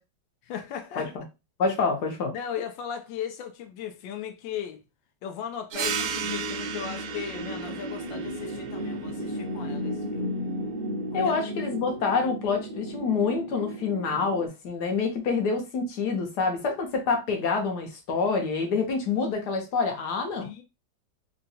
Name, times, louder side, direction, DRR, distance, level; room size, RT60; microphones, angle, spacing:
voice 1, 0.4-1.1 2.3-4.8 5.2-10.3 11.1-11.4 20.4-20.6, left 8 dB, 85° left, 1.3 m, -37 dB
voice 2, 1.6-2.3 11.1-20.5, left 4 dB, 65° left, 1.3 m, -27 dB
sound 1, 5.7-14.5, equal, 45° right, 0.7 m, -34 dB
sound 2, 5.7-10.9, right 7 dB, 70° right, 0.9 m, -36 dB
3.8 x 2.2 x 2.7 m
omnidirectional pair, 2.0 m